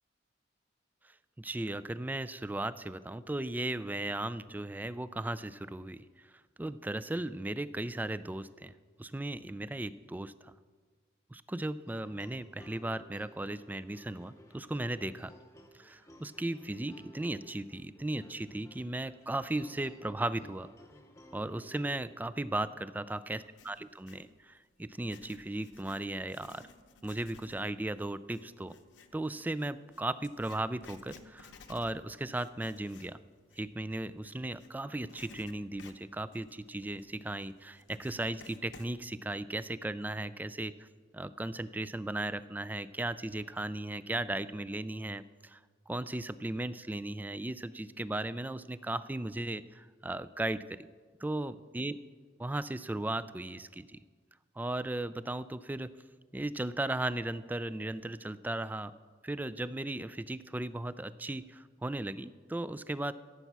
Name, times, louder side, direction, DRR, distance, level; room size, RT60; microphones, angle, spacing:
voice 1, 1.4-6.3 6.6-8.7 9.0-10.6 11.3-15.3 15.7-20.7 21.3-26.7 27.0-28.7 29.1-33.2 33.6-40.9 41.1-45.6 45.9-50.9 51.2-52.0 52.4-54.0 54.6-55.9 56.3-58.9 59.2-63.1, right 1 dB, 10° right, 15 dB, 0.3 m, -36 dB
sound 1, 11.9-22.3, equal, 15° left, 0.9 m, -57 dB
Writing, 23.3-24.3 24.9-34.7 35.1-39.0, left 4 dB, 70° left, 0.9 m, -56 dB
15.0 x 8.1 x 6.0 m, 1.5 s
head